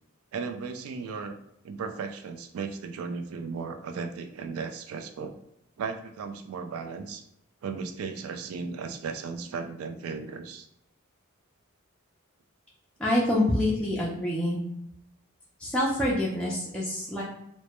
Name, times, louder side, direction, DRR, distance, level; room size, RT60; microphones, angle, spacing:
voice 1, 0.3-1.4 1.6-5.3 5.8-7.2 7.6-10.7, right 5 dB, 80° right, 7 dB, 0.3 m, -36 dB
voice 2, 13.0-14.6 15.6-17.2, left 1 dB, 5° left, -7 dB, 0.3 m, -26 dB
2.1 x 2.1 x 2.8 m, 0.78 s
head